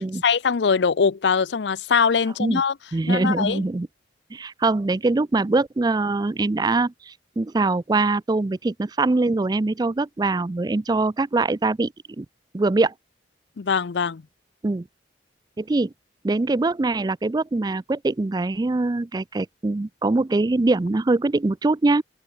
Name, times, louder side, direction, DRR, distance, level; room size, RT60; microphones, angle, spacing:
voice 1, 0.0-2.7 3.1-3.6 13.6-14.2, left 6 dB, 70° left, 0.5 m, -22 dB
voice 2, 2.9-3.9 4.3-12.3 12.5-12.9 14.6-14.8 15.6-15.9 16.2-22.0, right 3 dB, 20° right, 0.4 m, -23 dB
open air
head